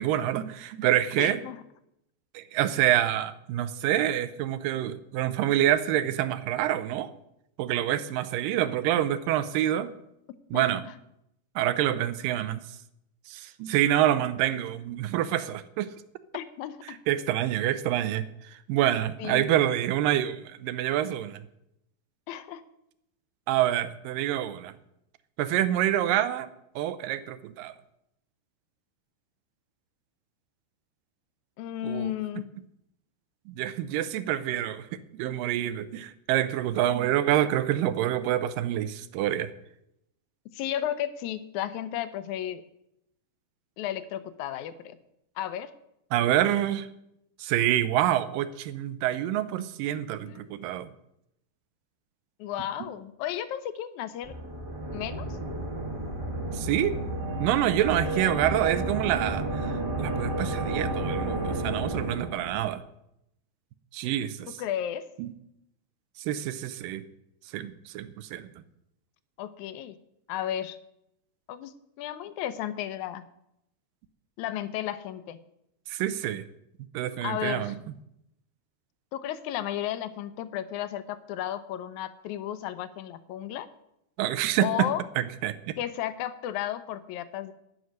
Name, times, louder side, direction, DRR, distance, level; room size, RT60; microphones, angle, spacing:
voice 1, 0.0-1.4 2.3-7.1 7.6-9.9 10.5-10.8 11.6-12.6 13.3-15.9 16.9-21.4 23.5-24.7 25.4-26.5 26.8-27.7 31.8-32.1 33.5-39.5 46.1-46.9 47.4-50.9 56.5-57.0 57.4-62.8 63.9-64.6 65.2-65.3 66.2-67.0 67.5-68.5 75.9-76.4 76.9-77.8 84.2-84.9 85.2-85.7, right 12 dB, 80° right, 13 dB, 2.2 m, -27 dB
voice 2, 1.2-1.6 10.5-10.7 16.3-17.0 19.2-19.5 22.3-22.6 31.6-32.5 40.5-42.6 43.8-45.0 45.4-45.7 50.2-50.6 52.4-54.3 54.9-55.3 58.0-58.6 64.5-65.1 69.4-69.9 70.3-70.8 71.5-71.7 72.0-73.2 74.4-75.4 77.2-77.7 79.1-83.7 84.6-85.0 85.8-87.5, left 11 dB, 80° left, 12 dB, 1.7 m, -33 dB
sound 1, 54.2-62.7, right 2 dB, 60° right, 0.5 m, -31 dB
12.0 x 6.3 x 9.4 m, 0.81 s
omnidirectional pair, 4.2 m